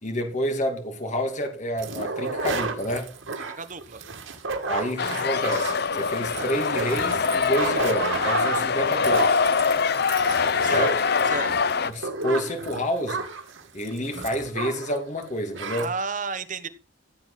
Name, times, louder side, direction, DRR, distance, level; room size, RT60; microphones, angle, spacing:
voice 1, 0.0-3.1 4.7-9.4 10.6-11.0 11.8-13.2 13.7-15.9, equal, 40° left, 5 dB, 2.5 m, -29 dB
sound 1, 1.8-15.0 15.2-15.3 15.5-15.9, right 4 dB, 85° right, 2.5 m, -32 dB
voice 2, 3.4-4.0 10.6-10.9 11.2-11.5 15.8-16.7, right 5 dB, 40° right, 11 dB, 1.2 m, -32 dB
sound 2, 5.0-11.9, left 5 dB, 55° left, 0.7 m, -24 dB
15.5 x 7.9 x 5.8 m, 0.40 s
head